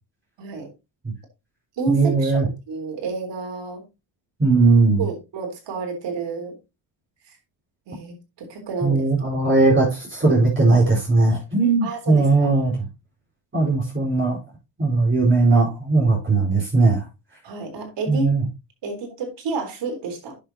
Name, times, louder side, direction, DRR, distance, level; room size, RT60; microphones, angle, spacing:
voice 1, 0.4-0.7 1.8-3.8 5.0-6.6 7.3-7.4 7.9-9.0 11.8-12.5 17.4-18.4 18.8-20.3, right 4 dB, 65° right, 3.9 m, -30 dB
voice 2, 1.9-2.5 4.4-5.0 8.8-12.9 13.5-14.4 14.8-17.1 18.1-18.4, right 3 dB, 25° right, 4.7 m, -18 dB
10.5 x 6.8 x 2.8 m
cardioid pair, 115°, 46 cm